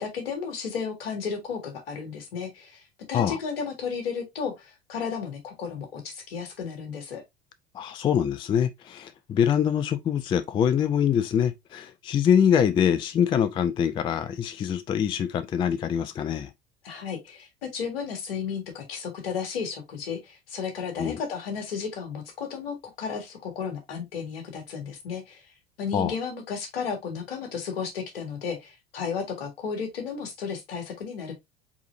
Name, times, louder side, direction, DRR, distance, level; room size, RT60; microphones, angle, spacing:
voice 1, 0.0-2.8 3.1-7.2 16.8-25.4 25.8-31.3, left 6 dB, 65° left, 1.7 m, -33 dB
voice 2, 7.7-16.5 21.0-21.2 25.9-26.1, left 8 dB, 15° left, 0.3 m, -24 dB
4.7 x 4.1 x 2.5 m
figure-of-eight pair, 70°, 31 cm